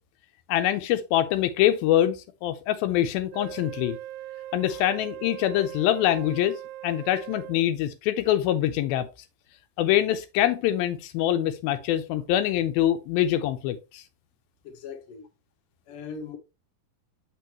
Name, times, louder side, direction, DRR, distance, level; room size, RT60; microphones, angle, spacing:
voice 1, 0.5-4.0 4.5-6.5 6.8-9.1 9.8-14.0, left 12 dB, 85° left, 2.4 m, -24 dB
Wind instrument woodwind instrument, 3.3-7.7, right 13 dB, 90° right, 2.6 m, -40 dB
voice 2, 14.6-15.2 15.9-16.4, left 5 dB, 55° left, 1.8 m, -40 dB
6.9 x 5.4 x 2.9 m
omnidirectional pair, 4.3 m